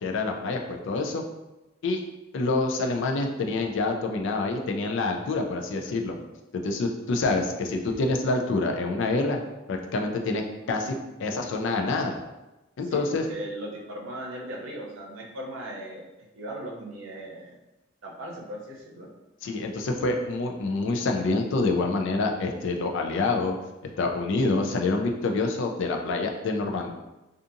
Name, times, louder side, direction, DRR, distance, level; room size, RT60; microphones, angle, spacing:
voice 1, 0.0-1.2 1.8-2.0 2.3-6.2 6.6-9.4 9.7-10.4 10.7-10.9 11.2-12.2 12.8-13.2 19.4-23.6 24.0-26.9, left 3 dB, 65° left, 3 dB, 0.4 m, -27 dB
voice 2, 12.8-16.0 16.3-17.6 18.0-19.1, right 1 dB, 80° right, -2 dB, 0.6 m, -38 dB
2.6 x 2.4 x 2.5 m, 1.0 s
head